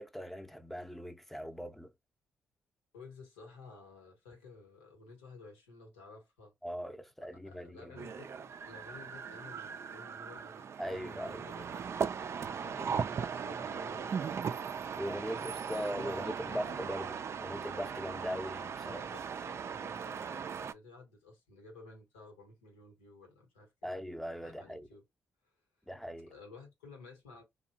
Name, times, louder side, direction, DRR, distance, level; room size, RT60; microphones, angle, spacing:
voice 1, 0.0-1.9 6.6-8.1 10.8-11.4 15.0-19.0 23.8-24.9 25.9-26.3, equal, 5° left, 0.6 m, -40 dB
voice 2, 2.9-6.5 7.2-12.2 12.5-14.7 15.3-16.9 18.8-23.9 24.4-25.0 25.4-25.5 26.3-27.4, left 3 dB, 90° left, 1.0 m, -53 dB
sound 1, 8.0-20.7, right 6 dB, 45° right, 0.3 m, -38 dB
2.7 x 2.2 x 2.8 m
hypercardioid pair, 40°, 6 cm